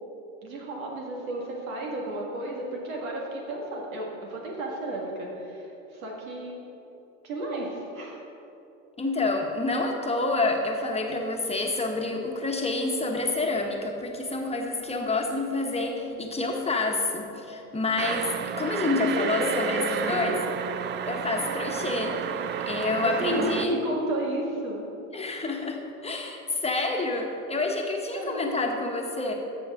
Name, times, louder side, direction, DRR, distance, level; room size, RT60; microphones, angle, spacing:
voice 1, 0.4-6.6 7.2-8.2 18.8-20.4 23.0-24.9 28.2-28.6, right 1 dB, 90° right, -1 dB, 2.0 m, -32 dB
voice 2, 9.0-20.4 21.0-22.3 22.7-23.8 25.1-29.3, left 2 dB, 15° left, 1 dB, 1.1 m, -28 dB
sound 1, 18.0-23.6, right 8 dB, 30° right, 0.4 m, -32 dB
13.5 x 6.3 x 3.7 m, 2.8 s
hypercardioid pair, 90°, 40 cm